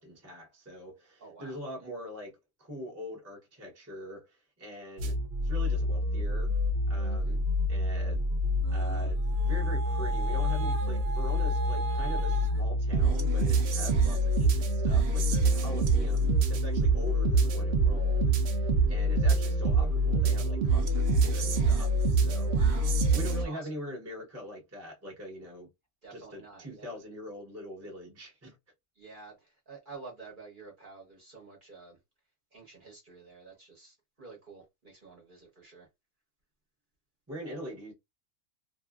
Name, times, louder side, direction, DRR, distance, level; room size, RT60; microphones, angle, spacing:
voice 1, 0.0-2.3 2.6-5.2 5.4-6.5 6.9-7.4 7.7-8.3 8.7-22.6 23.1-25.7 26.1-28.5 37.3-37.9, equal, 15° right, 0.7 m, -43 dB
voice 2, 1.2-1.6 7.0-7.4 22.5-22.9 23.4-23.7 26.0-27.0 29.0-32.0 32.5-35.9, right 4 dB, 40° right, 1.0 m, -50 dB
sound 1, 5.0-23.4, right 1 dB, 60° right, 0.7 m, -26 dB
2.7 x 2.5 x 2.3 m
omnidirectional pair, 1.6 m